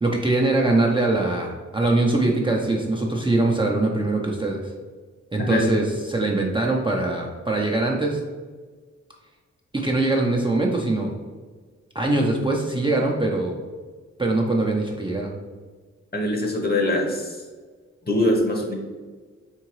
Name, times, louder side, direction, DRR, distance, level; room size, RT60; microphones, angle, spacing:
voice 1, 0.0-4.7 5.3-8.2 9.8-11.1 11.9-13.5 14.2-15.3, right 2 dB, 15° right, -1 dB, 0.5 m, -22 dB
voice 2, 16.1-17.4 18.0-18.7, left 1 dB, 35° left, 0 dB, 0.9 m, -23 dB
3.8 x 3.7 x 3.1 m, 1.4 s
cardioid pair, 85°, 29 cm